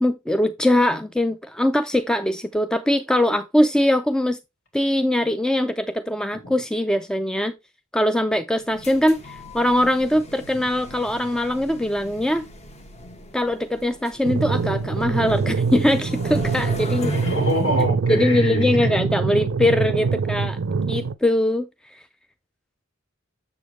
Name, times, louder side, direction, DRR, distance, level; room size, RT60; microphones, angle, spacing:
voice 1, 0.0-4.4 4.7-7.5 7.9-12.5 13.3-17.1 18.1-20.6 20.9-22.0, left 1 dB, 5° left, 0.3 m, -22 dB
sound 1, 8.6-17.9, left 1 dB, 35° left, 1.2 m, -40 dB
sound 2, 14.2-21.1, right 4 dB, 60° right, 0.5 m, -24 dB
voice 2, 17.0-19.0, left 1 dB, 80° left, 2.9 m, -24 dB
7.2 x 7.0 x 3.0 m
head